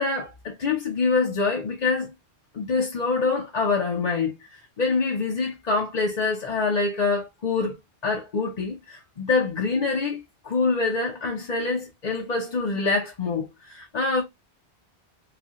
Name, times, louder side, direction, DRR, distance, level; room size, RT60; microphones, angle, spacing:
voice 1, 0.0-2.1 2.5-7.8 8.0-14.2, left 4 dB, 45° left, 0.7 m, -25 dB
4.8 x 2.3 x 2.9 m
omnidirectional pair, 1.1 m